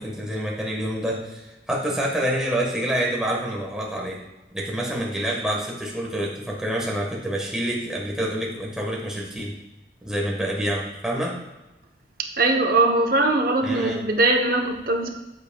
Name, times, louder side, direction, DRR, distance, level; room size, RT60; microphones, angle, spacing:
voice 1, 0.0-4.2 4.5-9.6 10.0-11.4 13.6-14.0, right 1 dB, 5° right, -3 dB, 1.3 m, -27 dB
voice 2, 12.2-15.1, right 2 dB, 55° right, 3 dB, 0.8 m, -21 dB
8.0 x 7.6 x 2.3 m, 1.0 s
head